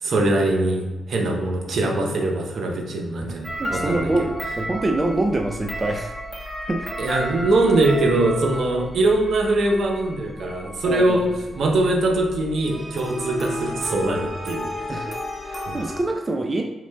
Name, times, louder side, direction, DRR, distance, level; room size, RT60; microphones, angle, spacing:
voice 1, 0.0-4.3 7.0-14.7 15.7-15.8, right 2 dB, 70° right, 2 dB, 0.7 m, -22 dB
creepy music, 3.4-16.0, equal, 5° left, 1.4 m, -33 dB
voice 2, 3.6-6.1 6.7-6.9 8.7-8.8 10.8-11.2 14.0-14.2 14.9-16.6, right 2 dB, 35° right, 3 dB, 0.5 m, -25 dB
4.8 x 3.6 x 2.2 m, 1.2 s
supercardioid pair, 55°, 0 cm